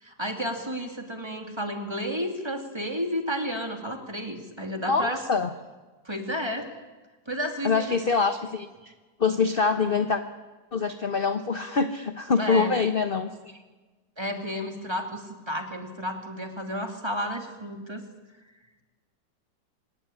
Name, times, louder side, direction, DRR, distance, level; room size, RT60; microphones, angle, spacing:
voice 1, 0.0-5.2 6.0-6.7 7.3-8.0 12.4-12.7 14.2-18.0, equal, 15° right, 4 dB, 2.6 m, -32 dB
voice 2, 4.9-5.5 7.6-8.9 9.2-10.2 10.7-13.6, left 5 dB, 35° left, 9 dB, 1.1 m, -25 dB
25.5 x 18.0 x 10.0 m, 1.3 s
omnidirectional pair, 1.9 m